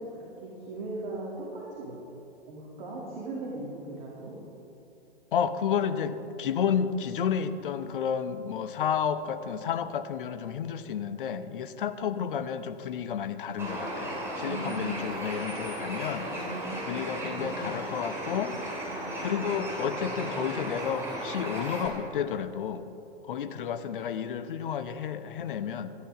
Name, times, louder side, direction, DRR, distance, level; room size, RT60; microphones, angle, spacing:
voice 1, 0.0-2.0 2.4-4.3 12.0-12.2 14.4-14.9 16.2-16.9 17.2-17.8 18.8-19.2 23.4-23.7, right 2 dB, 45° right, -5 dB, 2.6 m, -39 dB
voice 2, 5.3-16.3 16.9-18.5 18.8-22.8 23.2-25.9, left 7 dB, 55° left, 11 dB, 0.8 m, -31 dB
Bird, 13.6-21.9, right 1 dB, 10° right, 3.1 m, -35 dB
14.5 x 10.0 x 4.9 m, 3.0 s
figure-of-eight pair, 105°, 31 cm